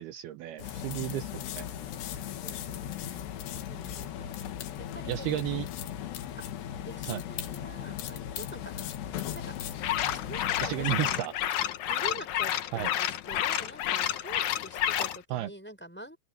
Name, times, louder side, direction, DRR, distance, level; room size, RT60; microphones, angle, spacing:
voice 1, 0.0-1.7 5.1-5.7 7.1-7.2 10.6-11.3 12.7-12.9 15.3-15.5, right 14 dB, 75° right, 2.8 m, -33 dB
sound 1, 0.6-11.2, left 10 dB, 85° left, 3.8 m, -37 dB
voice 2, 1.4-3.3 3.7-4.4 4.8-5.5 6.4-6.5 6.8-8.9 9.3-9.5 10.1-11.3 11.9-16.2, right 1 dB, 5° left, 5.2 m, -46 dB
sound 2, 9.8-15.2, left 11 dB, 70° left, 1.8 m, -30 dB
omnidirectional pair, 4.7 m